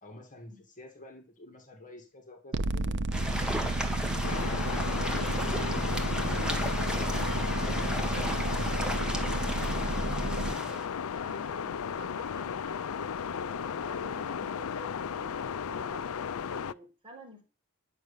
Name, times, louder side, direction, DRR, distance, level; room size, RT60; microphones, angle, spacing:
voice 1, 0.0-3.0 3.4-8.4 8.8-9.3, left 1 dB, 35° left, 2.0 m, -49 dB
sound 1, 2.5-10.5, right 2 dB, 55° right, 0.7 m, -32 dB
sound 2, 3.1-10.8, equal, 5° right, 1.7 m, -35 dB
sound 3, 4.2-16.7, left 7 dB, 70° left, 0.5 m, -35 dB
voice 2, 11.2-15.4 15.7-17.4, equal, 25° right, 4.4 m, -51 dB
11.0 x 6.5 x 6.9 m
head